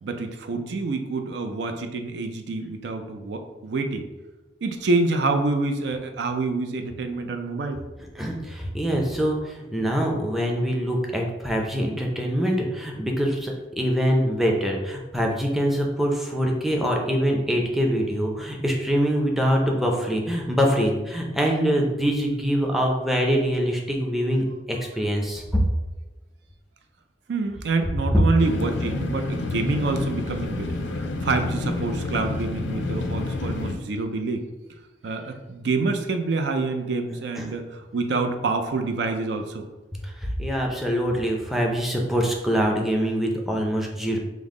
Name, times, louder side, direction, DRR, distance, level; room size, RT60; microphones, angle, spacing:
voice 1, 0.0-4.0 4.6-7.8 27.3-34.5 35.0-39.6, right 3 dB, 65° right, 6 dB, 0.4 m, -27 dB
voice 2, 8.2-25.4 37.4-37.5 40.0-44.2, equal, ahead, 0 dB, 0.5 m, -24 dB
sound 1, 28.4-33.7, left 2 dB, 85° left, 0.5 m, -29 dB
5.3 x 2.0 x 3.6 m, 1.2 s
head